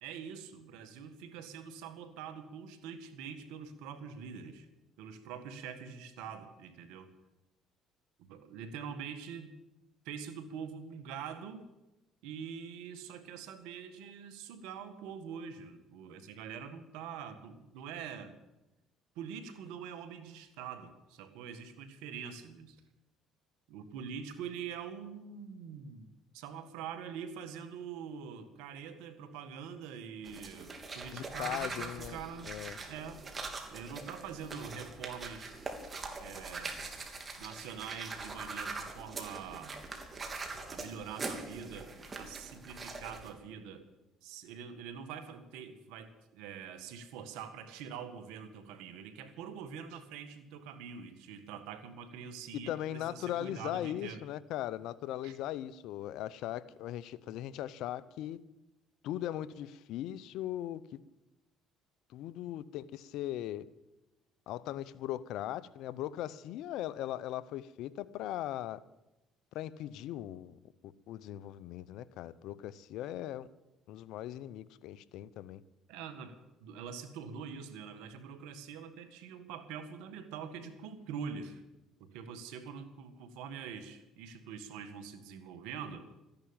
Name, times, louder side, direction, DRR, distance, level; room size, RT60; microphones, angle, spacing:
voice 1, 0.0-4.7 5.0-7.1 8.2-9.6 10.1-11.7 12.2-18.4 19.2-22.8 23.7-26.1 26.3-32.5 32.9-33.2 33.7-35.5 36.2-36.8 37.4-39.8 40.7-43.9 44.2-54.2 55.2-55.4 75.9-81.6 82.0-86.1, right 7 dB, 85° right, 1.7 m, -44 dB
sound 1, 30.2-43.3, right 3 dB, 35° right, 2.9 m, -43 dB
voice 2, 31.1-32.8 52.5-58.4 59.0-60.8 62.1-63.7 64.5-68.8 69.5-73.5 73.9-75.6, left 13 dB, 75° left, 0.7 m, -39 dB
14.0 x 10.5 x 8.8 m
supercardioid pair, 75°, 0 cm